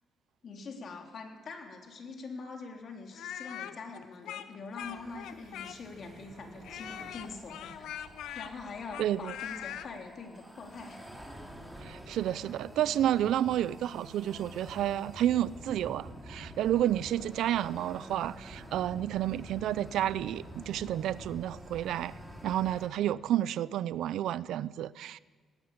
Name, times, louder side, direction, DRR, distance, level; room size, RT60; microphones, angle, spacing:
voice 1, 0.4-7.9 8.3-11.0, left 4 dB, 55° left, 2 dB, 3.8 m, -44 dB
Speech, 3.1-6.0 6.6-9.9, left 10 dB, 85° left, 0.9 m, -41 dB
sound 1, 4.8-9.9, right 2 dB, 40° right, 6.4 m, -55 dB
sound 2, 7.1-22.9, equal, ahead, 4.5 m, -48 dB
voice 2, 9.0-9.3 11.8-22.1 22.4-25.2, right 12 dB, 80° right, 18 dB, 0.6 m, -30 dB
18.5 x 18.5 x 8.8 m, 1.4 s
cardioid pair, 90°, 0 cm